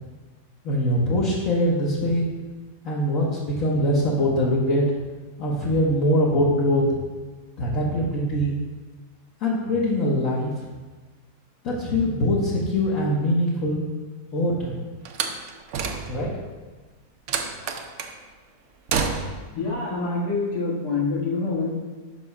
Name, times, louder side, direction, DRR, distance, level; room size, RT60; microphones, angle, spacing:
voice 1, 0.6-2.3 2.8-4.8 5.4-6.9 7.6-8.6 9.4-10.5 11.6-13.8 14.3-14.8 16.1-16.3, equal, 60° left, -5 dB, 1.3 m, -22 dB
Slam, 15.1-16.4 17.3-18.2 18.9-19.5, right 5 dB, 65° right, 0.8 m, -28 dB
voice 2, 19.5-21.7, left 3 dB, 80° left, -4 dB, 2.1 m, -26 dB
5.9 x 4.8 x 5.4 m, 1.3 s
omnidirectional pair, 1.7 m